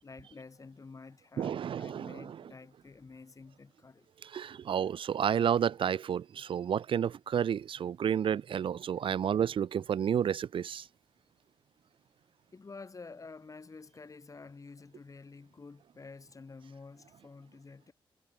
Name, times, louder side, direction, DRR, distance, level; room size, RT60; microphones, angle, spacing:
voice 1, 0.0-4.1 9.0-9.2 12.5-17.9, left 4 dB, 40° left, 6.1 m, -50 dB
voice 2, 1.4-2.1 4.3-10.8, right 8 dB, 70° right, 1.0 m, -30 dB
cardioid pair, 75°, 9 cm